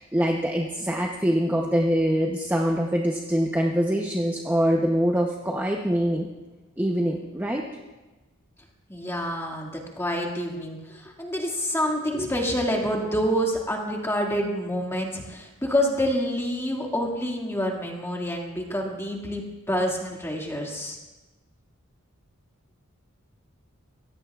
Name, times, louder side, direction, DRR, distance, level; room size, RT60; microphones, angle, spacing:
voice 1, 0.0-6.3 6.8-7.7, equal, 10° right, 0 dB, 0.8 m, -24 dB
voice 2, 8.9-21.0, equal, 10° left, 0 dB, 2.1 m, -27 dB
23.5 x 17.0 x 2.4 m, 1.1 s
head